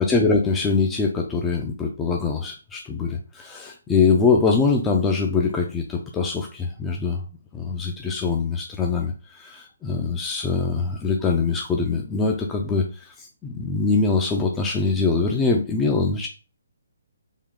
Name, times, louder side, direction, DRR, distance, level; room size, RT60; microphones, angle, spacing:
voice 1, 0.0-7.2 7.5-16.3, left 4 dB, 10° left, 1 dB, 0.4 m, -23 dB
3.6 x 2.3 x 3.6 m, 0.33 s
hypercardioid pair, 160°, 0 cm